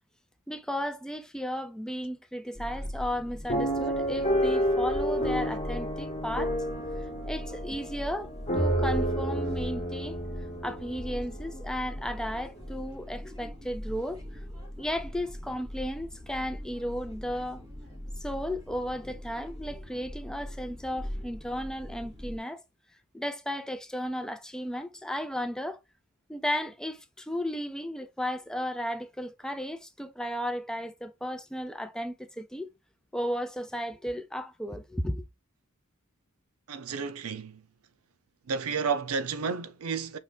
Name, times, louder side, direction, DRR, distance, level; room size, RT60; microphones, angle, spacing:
voice 1, 0.5-6.6 7.3-10.2 10.6-14.2 14.8-17.6 18.2-22.6 23.1-25.8 26.3-32.7 33.1-35.3, equal, 5° left, 0.4 m, -34 dB
sound 1, 2.5-22.4, equal, 15° right, 2.0 m, -41 dB
sound 2, 3.5-11.6 12.2-12.3 12.6-12.8, equal, 30° left, 1.9 m, -30 dB
voice 2, 36.7-37.6 38.5-40.2, right 5 dB, 70° right, 0.5 m, -31 dB
5.5 x 3.1 x 2.2 m
head